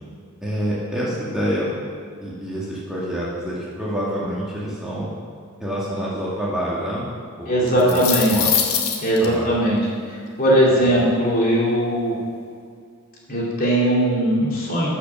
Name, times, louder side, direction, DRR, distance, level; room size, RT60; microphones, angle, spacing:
voice 1, 0.4-1.7 2.2-5.1 5.6-7.1 7.4-8.0 8.3-8.5 9.2-9.5 10.7-10.8, equal, ahead, -8 dB, 2.0 m, -27 dB
voice 2, 7.5-8.4 9.0-9.8 10.1-12.2 13.3-14.9, right 1 dB, 40° left, -5 dB, 2.9 m, -19 dB
sound 1, 7.7-9.2, left 8 dB, 75° left, 1.4 m, -22 dB
12.0 x 5.9 x 7.0 m, 2.3 s
head